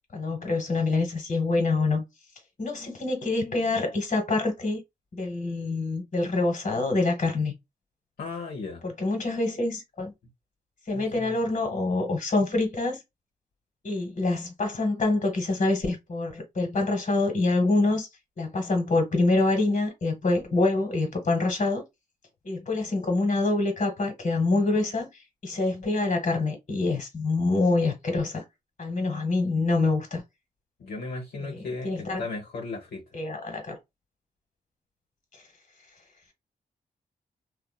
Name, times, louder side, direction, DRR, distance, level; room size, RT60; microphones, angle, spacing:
voice 1, 0.1-2.0 2.6-4.8 5.1-7.5 8.8-10.1 10.9-13.0 13.8-18.1 18.4-21.8 22.4-25.1 25.4-28.4 28.8-30.2 31.4-32.2 33.1-33.8, left 2 dB, 50° left, 1.3 m, -26 dB
voice 2, 8.2-8.8 10.9-11.4 30.8-33.0, left 3 dB, 80° left, 0.9 m, -36 dB
2.8 x 2.2 x 2.2 m
cardioid pair, 50°, 16 cm